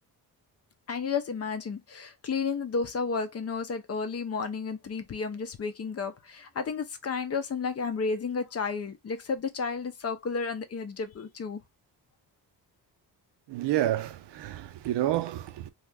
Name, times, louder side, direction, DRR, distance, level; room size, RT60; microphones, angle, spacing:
voice 1, 0.9-11.6, left 5 dB, 40° left, 0.5 m, -32 dB
voice 2, 13.5-15.7, right 13 dB, 85° right, 0.6 m, -29 dB
2.8 x 2.4 x 3.3 m
cardioid pair, 115°, 41 cm